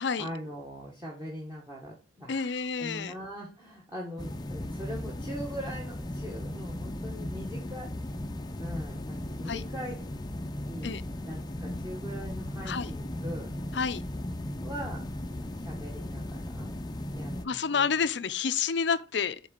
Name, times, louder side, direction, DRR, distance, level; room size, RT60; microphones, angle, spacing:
voice 1, 0.0-7.9 8.6-10.0 10.6-11.0 11.2-13.8 14.6-15.0 15.4-16.8 17.1-17.9, equal, 15° right, 1.7 m, -41 dB
voice 2, 2.3-3.1 9.5-9.6 10.8-11.0 12.7-12.9 13.7-14.0 17.4-19.4, left 6 dB, 65° left, 0.6 m, -29 dB
sound 1, 4.2-17.4, left 1 dB, 20° left, 0.6 m, -37 dB
7.4 x 4.0 x 6.5 m
head